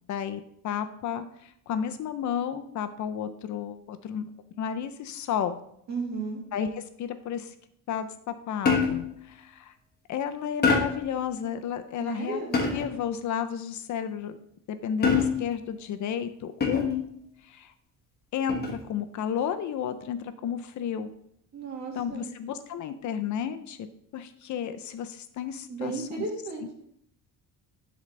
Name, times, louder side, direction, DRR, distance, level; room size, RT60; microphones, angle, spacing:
voice 1, 0.1-4.3 4.6-5.6 6.5-7.5 7.9-9.7 10.1-12.4 12.7-14.4 14.7-17.1 17.4-17.7 18.3-21.1 21.9-23.9 24.1-26.3, left 8 dB, 55° left, 9 dB, 0.5 m, -32 dB
voice 2, 5.9-6.4 12.0-12.6 21.5-22.3 25.7-26.6, right 4 dB, 50° right, 0 dB, 1.8 m, -34 dB
sound 1, 8.7-9.2 10.6-11.1 12.5-13.0 15.0-15.6 16.6-17.1 18.5-18.9, left 5 dB, 30° left, 1.3 m, -25 dB
11.0 x 3.9 x 3.2 m, 0.72 s
cardioid pair, 160°, 35 cm